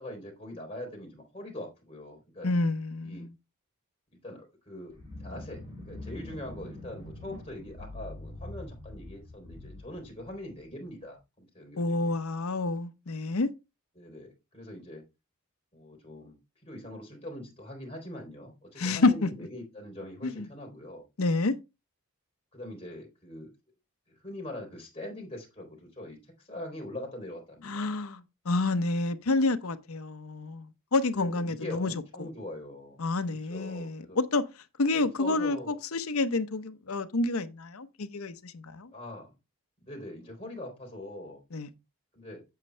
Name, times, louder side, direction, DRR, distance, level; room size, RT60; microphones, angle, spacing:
voice 1, 0.0-2.5 3.0-3.3 4.2-12.1 13.9-15.0 15.7-16.4 16.6-21.0 22.5-23.5 24.1-26.2 26.4-27.7 31.1-33.0 33.5-34.2 35.0-35.7 38.9-39.3 39.8-41.4 42.1-42.4, left 1 dB, 25° left, 3.4 m, -42 dB
voice 2, 2.4-3.3 11.8-13.5 18.8-19.3 20.2-20.5 21.2-21.5 27.6-31.9 32.2-32.3 33.0-34.4 34.8-38.9 41.5-41.7, left 3 dB, 70° left, 0.8 m, -29 dB
sound 1, 4.9-10.9, left 1 dB, 20° right, 5.7 m, -44 dB
8.2 x 7.3 x 3.3 m
head